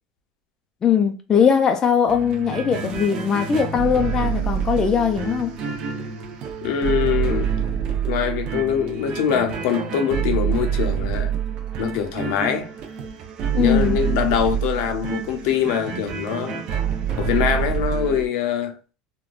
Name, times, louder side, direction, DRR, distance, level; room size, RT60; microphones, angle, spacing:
voice 1, 0.8-5.5 13.5-14.0, left 7 dB, 25° left, 0.4 m, -20 dB
sound 1, 2.1-18.3, right 8 dB, 45° right, 0.6 m, -26 dB
voice 2, 6.6-7.5 8.1-11.3 11.8-12.7 13.5-16.6 17.2-18.7, left 8 dB, 70° left, 0.6 m, -23 dB
3.5 x 2.2 x 2.3 m
supercardioid pair, 130°, 2 cm